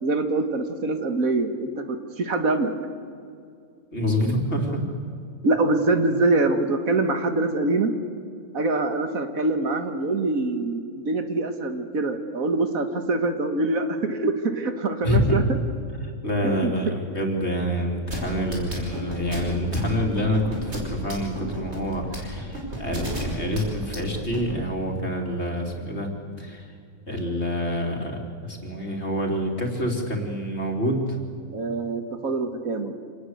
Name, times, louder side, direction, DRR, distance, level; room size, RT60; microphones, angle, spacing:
voice 1, 0.0-2.7 5.4-7.9 8.5-15.6 16.4-16.7 31.5-32.9, right 2 dB, 75° right, 8 dB, 2.1 m, -24 dB
voice 2, 3.9-4.8 15.0-15.4 15.9-26.1 26.4-26.7 27.1-31.2, equal, 50° left, 2 dB, 3.5 m, -27 dB
sound 1, 18.1-24.5, right 1 dB, 50° right, 5.7 m, -32 dB
27.0 x 19.0 x 8.0 m, 2.4 s
omnidirectional pair, 1.5 m